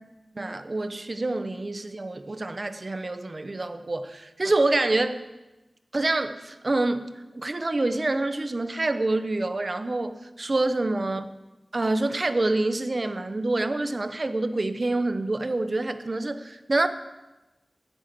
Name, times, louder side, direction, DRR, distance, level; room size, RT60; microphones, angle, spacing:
voice 1, 0.3-5.2 5.9-7.0 7.3-11.3 11.7-16.9, right 2 dB, 40° right, 10 dB, 0.9 m, -26 dB
10.0 x 8.0 x 7.7 m, 1.1 s
wide cardioid pair, 75°, 0 cm